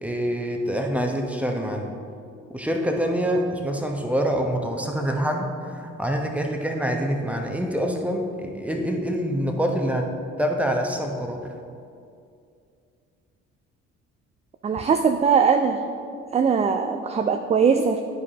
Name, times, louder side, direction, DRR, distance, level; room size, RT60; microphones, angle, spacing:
voice 1, 0.0-1.9 2.5-10.1 10.4-11.5, equal, 5° right, 2 dB, 1.0 m, -26 dB
voice 2, 14.6-15.8 16.3-18.0, right 6 dB, 20° right, 6 dB, 0.3 m, -20 dB
11.0 x 4.8 x 2.9 m, 2.4 s
hypercardioid pair, 45°, 37 cm